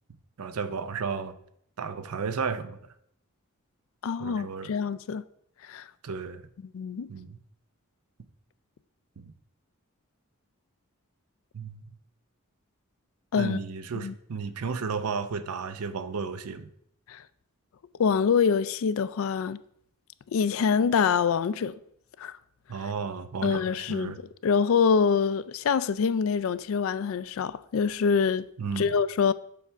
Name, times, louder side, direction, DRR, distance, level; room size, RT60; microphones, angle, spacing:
voice 1, 0.4-1.4 1.8-2.8 4.2-4.7 6.0-6.5 7.1-7.4 9.2-9.3 11.5-11.9 13.4-16.7 22.7-24.2 28.6-28.9, right 5 dB, 85° right, 0.6 m, -33 dB
voice 2, 4.0-5.2 5.7-5.9 6.6-7.1 13.3-13.6 13.9-14.1 17.1-17.2 18.0-19.6 20.3-21.7 22.2-22.3 23.4-24.1 24.4-28.4 28.8-29.3, left 6 dB, 65° left, 0.3 m, -25 dB
7.1 x 3.4 x 5.6 m
head